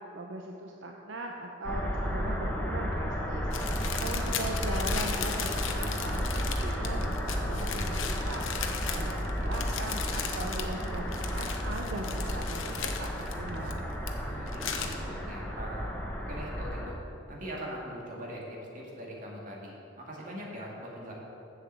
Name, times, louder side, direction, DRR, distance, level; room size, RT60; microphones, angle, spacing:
voice 1, 0.1-12.6 13.0-13.9, right 2 dB, 70° right, 1 dB, 0.7 m, -39 dB
sound 1, 1.6-16.9, equal, 10° left, 1.0 m, -33 dB
sound 2, 3.5-14.1 14.4-14.9, left 7 dB, 90° left, 0.8 m, -37 dB
voice 2, 14.1-17.0 17.3-19.7 20.0-21.1, equal, 45° right, -3 dB, 2.2 m, -42 dB
7.7 x 7.4 x 7.5 m, 2.9 s
head